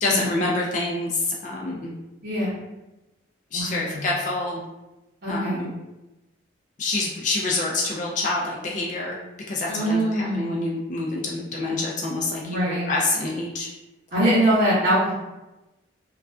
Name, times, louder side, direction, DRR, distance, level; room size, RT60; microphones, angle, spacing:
voice 1, 0.0-1.9 3.5-4.6 5.3-5.7 6.8-13.7, left 2 dB, 40° left, -3 dB, 0.4 m, -27 dB
voice 2, 2.2-2.6 3.5-4.0 5.2-5.7 9.7-10.6 12.4-12.9 14.1-15.1, right 1 dB, 55° right, -12 dB, 0.7 m, -23 dB
2.3 x 2.2 x 2.3 m, 1.0 s
head